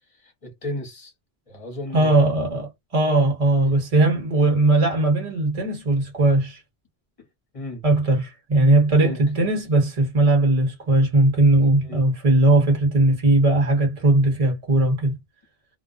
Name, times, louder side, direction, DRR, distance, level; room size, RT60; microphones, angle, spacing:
voice 1, 0.2-1.1 1.5-2.2 3.6-3.7 4.4-4.5 7.5-7.8 8.9-9.2 11.8-12.0, left 1 dB, 35° left, 1.0 m, -35 dB
voice 2, 1.9-6.6 7.8-15.2, right 2 dB, 35° right, 1.2 m, -19 dB
2.4 x 2.1 x 2.5 m
omnidirectional pair, 1.1 m